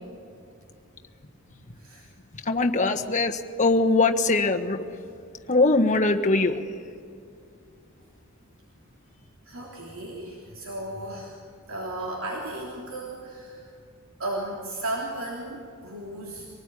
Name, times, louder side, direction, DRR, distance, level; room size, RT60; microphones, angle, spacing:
voice 1, 2.5-4.8 5.5-6.5, left 3 dB, 35° left, 4 dB, 1.4 m, -21 dB
voice 2, 9.4-11.4 11.7-13.7 14.2-16.5, right 1 dB, 70° right, -3 dB, 3.4 m, -35 dB
25.0 x 19.5 x 9.9 m, 2.4 s
head